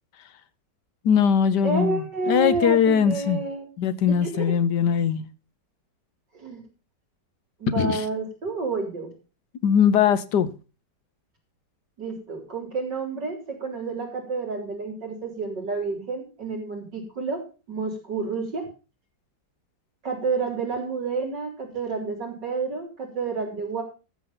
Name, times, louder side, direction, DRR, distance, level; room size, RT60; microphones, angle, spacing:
voice 1, 1.0-3.4 3.8-5.2 7.8-8.0 9.6-10.5, left 7 dB, 75° left, 1.5 m, -21 dB
voice 2, 1.6-3.7 4.1-4.5 6.3-6.7 7.6-9.1 12.0-17.4 17.7-18.7 20.0-23.8, right 4 dB, 80° right, 4.7 m, -29 dB
13.5 x 7.3 x 5.7 m
omnidirectional pair, 1.9 m